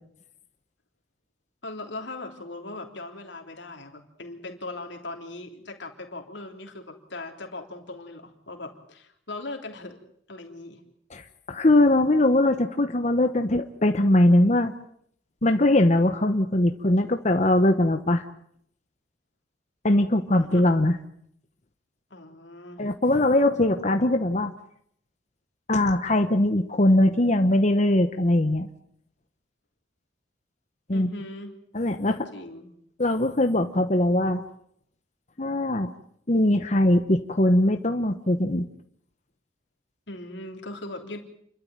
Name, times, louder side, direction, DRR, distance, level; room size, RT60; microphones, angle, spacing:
voice 1, 1.6-10.0 10.3-10.8 20.4-20.7 22.1-22.9 30.9-31.6 32.0-32.7 40.1-41.2, left 2 dB, 70° left, 3 dB, 3.4 m, -39 dB
voice 2, 11.5-14.7 15.4-18.2 19.8-21.0 22.8-24.5 25.7-28.7 30.9-31.1 31.7-32.2 33.0-34.4 35.4-35.9 36.3-38.7, left 1 dB, 40° left, 7 dB, 1.1 m, -21 dB
29.0 x 12.5 x 8.9 m, 0.68 s
head